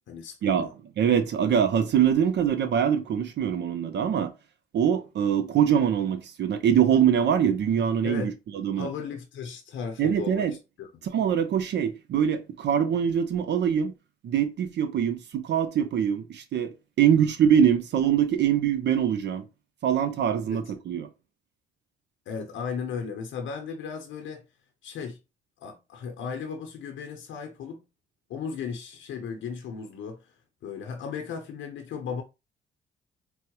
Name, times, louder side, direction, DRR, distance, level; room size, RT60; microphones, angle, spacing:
voice 1, 0.1-0.7 8.0-8.3 8.8-10.5 10.8-10.9 20.5-20.6 22.3-24.4 24.8-25.2 25.6-27.8 28.3-30.3 30.6-32.2, left 6 dB, 75° left, 0.6 m, -36 dB
voice 2, 1.0-4.3 4.7-8.9 10.0-10.5 11.1-13.9 14.2-19.4 19.8-21.1, right 8 dB, 60° right, 0.6 m, -23 dB
4.5 x 2.0 x 2.9 m
cardioid pair, 90°, 20 cm